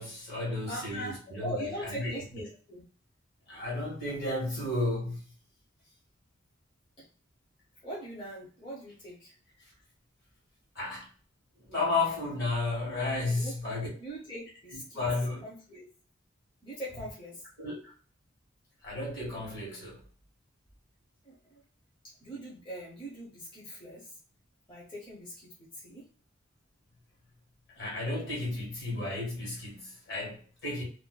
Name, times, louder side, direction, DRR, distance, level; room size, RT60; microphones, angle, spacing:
voice 1, 0.0-2.1 3.5-5.2 10.7-11.0 11.6-13.9 14.9-15.4 17.6-17.9 18.8-20.0 27.8-30.8, left 2 dB, 55° left, 1.3 m, -33 dB
voice 2, 0.7-2.8 7.0-7.1 7.8-9.3 13.3-13.5 14.0-15.1 15.4-15.9 16.6-17.5 21.2-21.6 22.0-24.2 24.7-26.1, right 1 dB, 25° left, 0.6 m, -41 dB
2.5 x 2.2 x 2.2 m
head